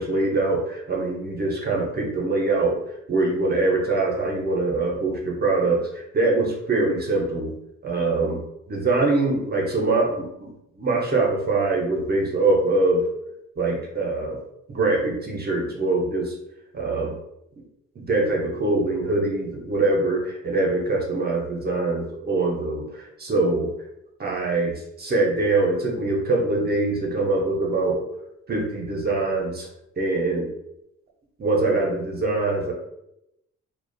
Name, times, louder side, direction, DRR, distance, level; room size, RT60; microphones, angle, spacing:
voice 1, 0.0-2.8 3.1-7.5 7.8-8.4 8.7-10.5 10.8-13.0 13.6-14.4 14.7-16.4 16.7-17.2 18.0-23.7 24.2-28.0 28.5-29.7 30.0-30.5 31.4-32.7, right 2 dB, 35° right, -2 dB, 0.6 m, -23 dB
2.3 x 2.1 x 2.5 m, 0.84 s
cardioid pair, 90°, 30 cm